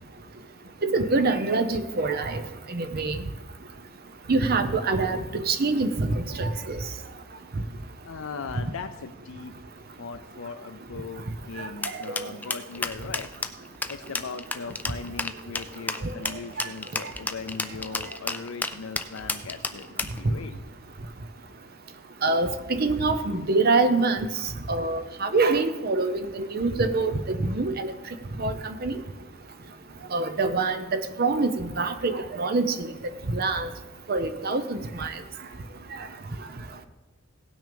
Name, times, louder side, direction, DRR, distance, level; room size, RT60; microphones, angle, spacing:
voice 1, 0.8-2.4 2.7-3.2 4.3-6.8 12.1-12.2 16.0-16.1 16.6-16.7 22.2-24.3 24.7-27.9 28.4-28.9 30.1-32.9 33.3-33.7 34.1-35.1, right 3 dB, 45° right, 9 dB, 0.7 m, -25 dB
voice 2, 8.0-9.5 10.0-13.5 13.9-20.6, left 5 dB, 70° left, 7 dB, 0.5 m, -39 dB
sound 1, 11.8-20.2, left 3 dB, 10° left, 0.4 m, -31 dB
17.0 x 6.1 x 5.2 m, 1.1 s
head